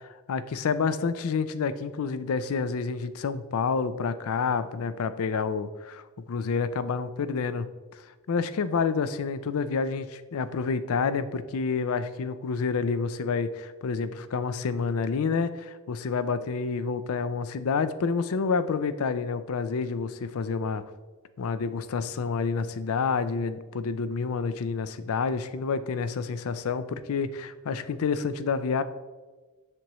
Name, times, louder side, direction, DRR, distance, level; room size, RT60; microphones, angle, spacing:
voice 1, 0.0-6.0 6.3-7.7 7.9-8.0 8.3-20.8 21.4-28.8, left 5 dB, 70° left, 13 dB, 0.4 m, -28 dB
7.6 x 6.7 x 3.0 m, 1.3 s
head